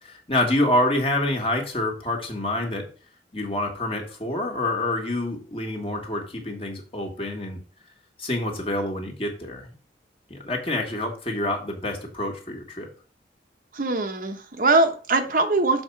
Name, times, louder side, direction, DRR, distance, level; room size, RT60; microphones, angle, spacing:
voice 1, 0.0-2.9 3.3-7.6 8.2-9.7 10.3-12.9, left 1 dB, 30° left, 2 dB, 1.6 m, -27 dB
voice 2, 13.7-15.8, right 2 dB, 50° right, 6 dB, 0.9 m, -22 dB
6.5 x 4.4 x 5.7 m, 0.38 s
head